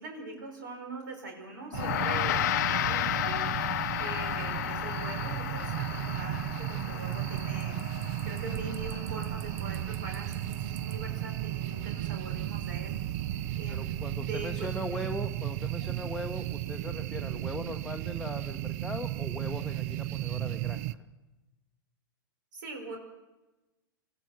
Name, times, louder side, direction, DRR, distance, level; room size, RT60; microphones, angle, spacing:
voice 1, 0.0-13.0 13.6-15.0 15.8-15.9 22.5-23.0, right 3 dB, 60° right, 3 dB, 4.6 m, -43 dB
Gong, 1.7-11.3, left 14 dB, 55° left, 0.8 m, -34 dB
sound 1, 1.7-20.9, right 14 dB, 45° right, 0.7 m, -34 dB
voice 2, 13.7-20.8, left 1 dB, 5° left, 2 dB, 1.2 m, -39 dB
28.5 x 16.0 x 6.3 m, 1.1 s
figure-of-eight pair, 100°, 12 cm